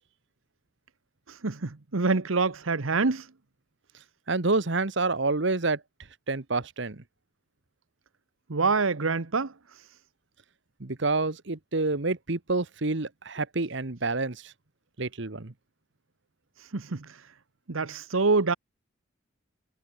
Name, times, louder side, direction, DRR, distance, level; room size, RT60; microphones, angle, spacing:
voice 1, 1.3-3.3 8.5-9.5 16.6-17.2 17.7-18.5, right 4 dB, 75° right, 1.1 m, -26 dB
voice 2, 4.3-5.8 6.3-7.0 10.8-14.4 15.0-15.5, right 3 dB, 60° right, 1.3 m, -28 dB
head